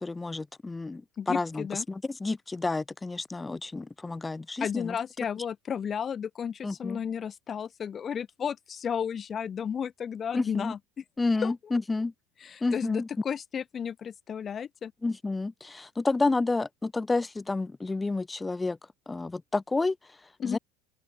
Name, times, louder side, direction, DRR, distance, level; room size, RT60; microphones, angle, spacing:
voice 1, 0.0-4.9 6.6-7.0 10.3-10.7 11.2-12.1 12.6-13.1 15.0-18.8 19.1-20.0 20.4-20.6, left 3 dB, 15° left, 2.5 m, -30 dB
voice 2, 1.2-1.8 4.6-11.0 11.4-11.5 12.4-14.9 20.4-20.6, left 7 dB, 35° left, 2.3 m, -33 dB
open air
hypercardioid pair, 95°, 0 cm